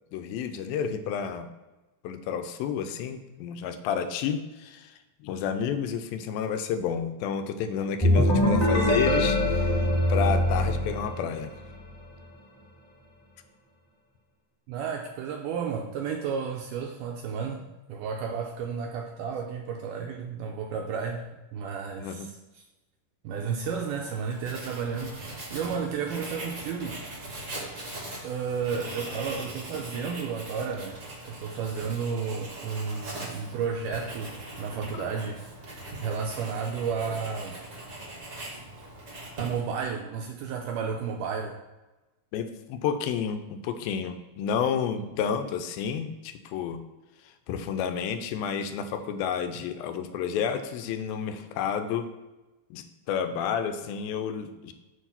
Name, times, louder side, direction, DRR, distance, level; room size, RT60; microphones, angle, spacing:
voice 1, 0.1-1.5 2.0-4.9 5.2-9.7 10.1-11.5 22.0-22.3 29.8-30.1 34.9-35.1 42.3-46.8 47.5-52.1 52.7-54.7, left 7 dB, 85° left, 8 dB, 2.4 m, -30 dB
sound 1, 8.0-11.7, left 1 dB, 15° left, 1.3 m, -23 dB
voice 2, 14.7-21.3 21.5-22.6 23.2-27.0 28.2-35.5 36.0-37.6 39.4-41.6, right 6 dB, 80° right, 3 dB, 1.9 m, -32 dB
Writing, 23.6-39.8, right 1 dB, 60° right, 0.8 m, -41 dB
6.9 x 4.6 x 5.7 m, 1.1 s
omnidirectional pair, 4.2 m